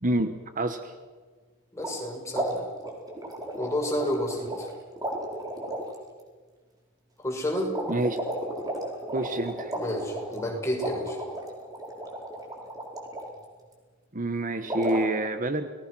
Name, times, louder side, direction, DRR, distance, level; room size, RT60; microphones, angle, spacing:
voice 1, 0.0-0.9 7.9-8.2 9.1-9.7 14.1-15.7, right 1 dB, 40° right, 9 dB, 1.2 m, -28 dB
voice 2, 1.7-2.7 3.6-4.7 7.2-7.7 9.7-11.2, equal, 15° left, 0 dB, 6.1 m, -30 dB
sound 1, 1.8-2.0 2.3-4.7 5.0-6.0 7.7-13.3 14.7-15.1, right 1 dB, 15° right, 4.6 m, -34 dB
29.5 x 19.5 x 6.3 m, 1.5 s
head